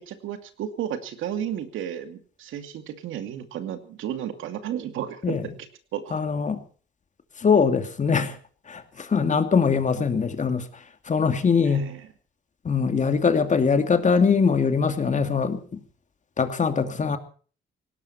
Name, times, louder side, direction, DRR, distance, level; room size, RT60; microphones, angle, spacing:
voice 1, 0.0-5.4 5.9-6.2 11.6-12.1, right 10 dB, 85° right, 8 dB, 2.6 m, -33 dB
voice 2, 6.1-6.6 7.4-8.3 8.7-10.6 11.1-11.9 12.6-15.6 16.4-17.2, left 5 dB, 40° left, 8 dB, 2.6 m, -22 dB
18.0 x 18.0 x 4.4 m, 0.41 s
cardioid pair, 90°, 20 cm